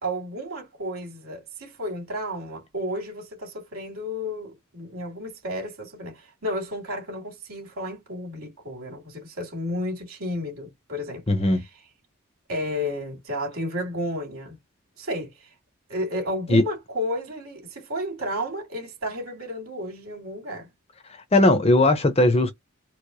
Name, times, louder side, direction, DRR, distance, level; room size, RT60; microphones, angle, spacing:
voice 1, 0.0-11.2 12.5-14.6 15.0-15.3 15.9-20.7, equal, 80° right, 2.6 m, -32 dB
voice 2, 11.3-11.6 16.5-16.6 21.1-22.5, left 2 dB, 30° left, 0.7 m, -18 dB
4.6 x 2.1 x 2.7 m
head